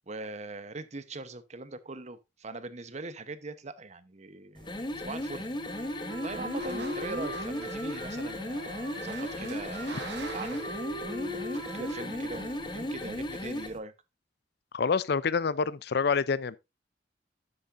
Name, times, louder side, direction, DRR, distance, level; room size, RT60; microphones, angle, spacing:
voice 1, 0.1-4.7 5.0-5.5 6.2-10.6 11.0-13.9, right 2 dB, 40° right, 0.9 m, -41 dB
sound 1, 4.6-13.8, left 1 dB, 25° left, 1.3 m, -36 dB
Wind instrument woodwind instrument, 5.6-13.2, equal, 65° right, 4.0 m, -41 dB
sound 2, 6.5-13.0, right 3 dB, 90° right, 3.0 m, -47 dB
voice 2, 14.7-16.6, left 5 dB, 65° left, 0.5 m, -27 dB
12.0 x 8.4 x 2.6 m
head